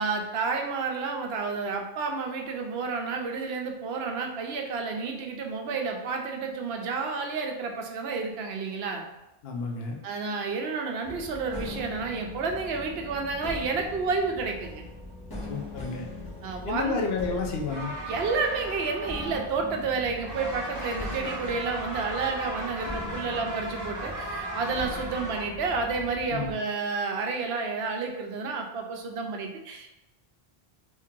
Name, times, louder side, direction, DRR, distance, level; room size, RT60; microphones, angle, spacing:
voice 1, 0.0-9.0 10.0-14.9 16.4-17.0 18.1-29.9, right 4 dB, 80° right, 3 dB, 0.8 m, -30 dB
voice 2, 9.4-10.0 15.5-16.1 16.6-17.9 26.3-26.5, left 4 dB, 75° left, 1 dB, 0.9 m, -30 dB
sound 1, 11.0-26.6, left 2 dB, 20° left, 1.1 m, -41 dB
sound 2, 17.7-19.8 20.0-25.4, right 1 dB, 20° right, 0.8 m, -37 dB
3.1 x 2.7 x 3.6 m, 0.96 s
omnidirectional pair, 1.0 m